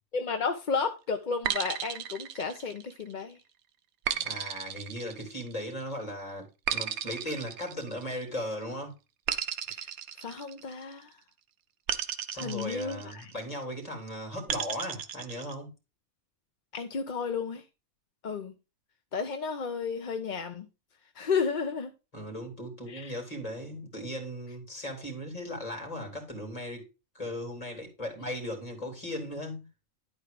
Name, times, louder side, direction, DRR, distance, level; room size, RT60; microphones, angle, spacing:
voice 1, 0.1-3.4 9.7-9.9 10.2-11.1 12.3-13.3 16.7-17.6 18.2-18.5 19.1-20.7 21.2-21.9 22.9-23.2, left 5 dB, 45° left, 0.7 m, -32 dB
sound 1, 1.4-3.1 4.1-5.7 6.7-8.4 9.3-11.0 11.9-13.4 14.5-15.5, right 9 dB, 80° right, 1.2 m, -34 dB
voice 2, 4.1-8.9 12.3-15.7 22.1-26.9 27.1-29.7, equal, 25° left, 3.2 m, -37 dB
11.5 x 4.5 x 5.0 m
omnidirectional pair, 1.5 m